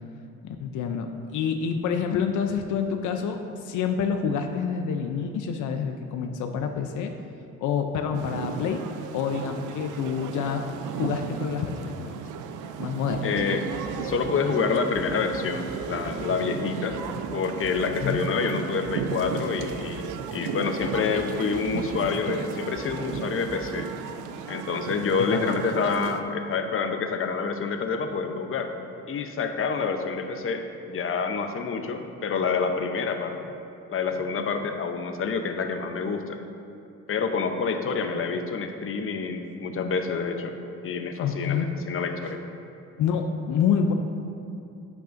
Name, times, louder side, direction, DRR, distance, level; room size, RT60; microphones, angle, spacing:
voice 1, 0.4-7.1 7.6-8.9 9.1-10.7 10.9-12.2 12.8-13.4 18.0-18.2 25.2-25.6 41.2-41.7 43.0-43.9, left 6 dB, 80° left, 5 dB, 0.6 m, -27 dB
sound 1, 8.1-26.2, right 6 dB, 85° right, 0.5 m, -35 dB
sound 2, 13.1-23.8, right 5 dB, 30° right, 0.4 m, -40 dB
voice 2, 13.2-13.6 14.0-17.0 17.3-23.9 24.5-28.7 29.1-33.4 33.9-36.4 37.1-40.5 40.8-42.4, left 5 dB, 45° left, 6 dB, 0.7 m, -27 dB
10.5 x 8.3 x 2.6 m, 2.6 s
cardioid pair, 90°, 30 cm